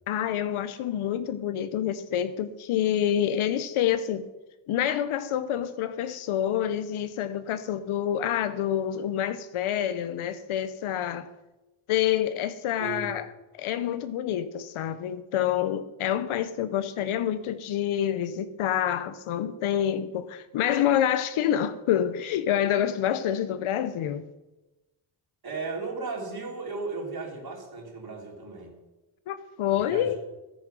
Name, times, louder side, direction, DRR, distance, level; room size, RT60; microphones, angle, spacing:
voice 1, 0.1-4.3 4.7-11.3 11.9-13.3 13.5-24.2 29.3-30.2, left 10 dB, 90° left, 0.7 m, -27 dB
voice 2, 12.8-13.1 25.4-28.7 29.7-30.2, right 3 dB, 50° right, 3.5 m, -35 dB
10.5 x 9.5 x 6.0 m
cardioid pair, 70°, 48 cm